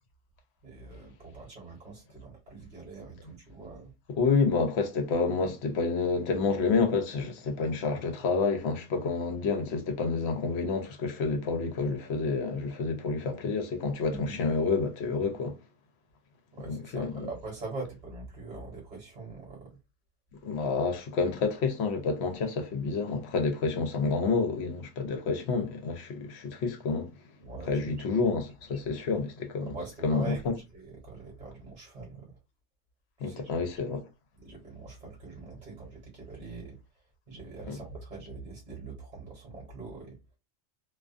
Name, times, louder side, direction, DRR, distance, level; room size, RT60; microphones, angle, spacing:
voice 1, 0.6-3.9 14.1-14.3 16.5-19.8 27.4-28.1 28.9-29.0 29.7-32.4 33.2-33.5 34.4-36.8 37.3-40.2, right 3 dB, 35° right, 1.1 m, -43 dB
voice 2, 4.2-15.6 16.7-17.3 20.4-27.1 27.7-29.7 30.0-30.5 33.2-34.1 37.7-37.8, left 4 dB, 65° left, 0.8 m, -29 dB
2.4 x 2.3 x 2.4 m
omnidirectional pair, 1.3 m